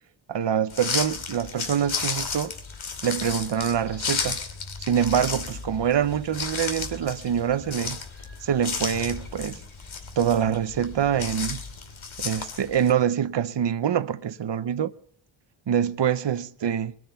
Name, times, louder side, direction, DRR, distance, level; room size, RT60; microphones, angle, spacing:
voice 1, 0.3-2.5 3.0-4.4 4.8-8.0 8.4-9.6 10.2-11.6 12.2-14.9 15.7-17.0, right 9 dB, 65° right, 0.9 m, -25 dB
sound 1, 0.7-12.9, left 5 dB, 80° left, 2.6 m, -33 dB
21.5 x 9.3 x 6.9 m
wide cardioid pair, 110°, 47 cm